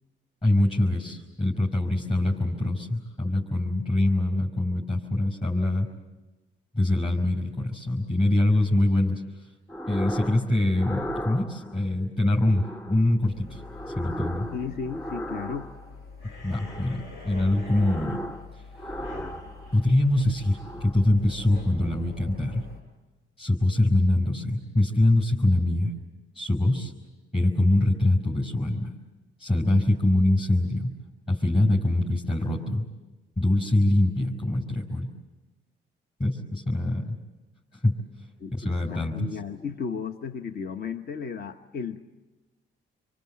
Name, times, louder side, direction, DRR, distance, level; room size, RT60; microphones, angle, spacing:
voice 1, 0.4-5.9 6.7-9.5 9.9-13.6 13.9-14.5 16.4-18.2 19.7-22.6 23.4-25.9 26.3-26.9 27.3-28.9 29.4-30.9 31.3-32.8 33.4-35.1 36.2-37.1 37.8-38.0 38.5-39.4, left 1 dB, 30° left, -3 dB, 4.7 m, -24 dB
sound 1, 9.7-10.4 10.7-11.8 12.4-13.0 13.5-15.9 16.4-17.1 17.4-18.4 18.7-19.9 20.4-21.0, equal, 10° left, 2.6 m, -37 dB
sound 2, 13.2-22.8, left 4 dB, 90° left, 6.5 m, -45 dB
voice 2, 14.5-15.7 38.4-42.0, left 6 dB, 50° left, 7 dB, 1.2 m, -34 dB
sound 3, 16.2-20.9, left 3 dB, 70° left, 6.4 m, -49 dB
27.0 x 24.0 x 7.6 m, 1.1 s
cardioid pair, 90°, 20 cm